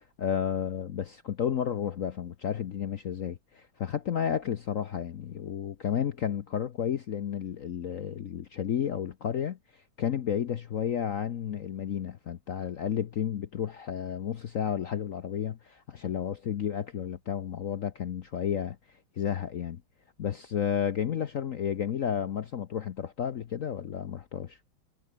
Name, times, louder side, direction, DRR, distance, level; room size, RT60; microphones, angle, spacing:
voice 1, 0.0-18.8 19.2-19.8 20.2-24.6, left 8 dB, 65° left, 0.8 m, -32 dB
omnidirectional pair, 2.4 m